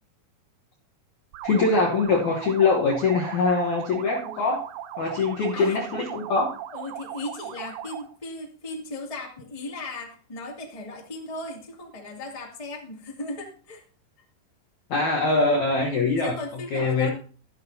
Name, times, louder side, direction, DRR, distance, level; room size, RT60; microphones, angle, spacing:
sound 1, 1.3-8.1, right 11 dB, 75° right, 2.6 m, -38 dB
voice 1, 1.4-4.6 5.0-6.5 14.9-16.3 16.7-17.1, left 3 dB, 85° left, -1 dB, 1.6 m, -23 dB
voice 2, 6.7-13.8 16.2-17.1, left 2 dB, 20° left, -1 dB, 1.0 m, -37 dB
13.0 x 12.0 x 2.8 m, 0.40 s
omnidirectional pair, 5.3 m